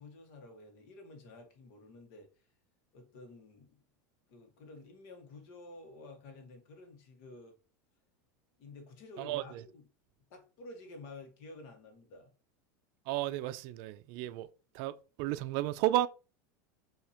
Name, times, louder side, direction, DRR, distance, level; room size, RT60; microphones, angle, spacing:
voice 1, 0.0-2.3 2.9-3.8 4.3-7.6 8.6-9.8 10.3-12.3, left 2 dB, 65° left, 1.5 m, -51 dB
voice 2, 9.2-9.6 13.1-14.5 14.7-16.1, right 14 dB, 55° right, 0.4 m, -33 dB
5.4 x 2.9 x 2.9 m
supercardioid pair, 130°, 9 cm